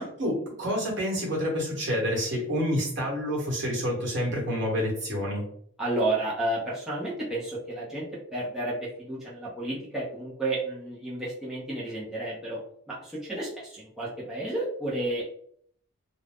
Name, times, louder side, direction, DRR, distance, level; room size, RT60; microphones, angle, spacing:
voice 1, 0.0-5.5, equal, 55° right, -2 dB, 1.1 m, -28 dB
voice 2, 5.8-12.6 12.9-15.2, right 1 dB, ahead, -8 dB, 0.6 m, -31 dB
2.5 x 2.1 x 3.4 m, 0.62 s
head